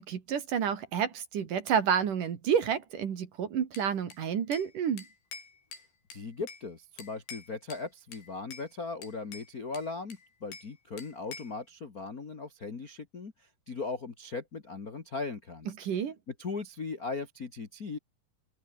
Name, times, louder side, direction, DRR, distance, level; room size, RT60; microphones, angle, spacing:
voice 1, 0.0-5.1 15.8-16.2, right 8 dB, 55° right, 3.5 m, -29 dB
Bell / Glass, 3.7-4.7 5.0-6.7 7.0-7.9 8.1-8.7 9.0-10.7 11.0-11.6, left 4 dB, 80° left, 8.5 m, -48 dB
voice 2, 6.1-15.7 16.4-18.0, left 4 dB, 55° left, 1.0 m, -38 dB
open air
omnidirectional pair, 5.0 m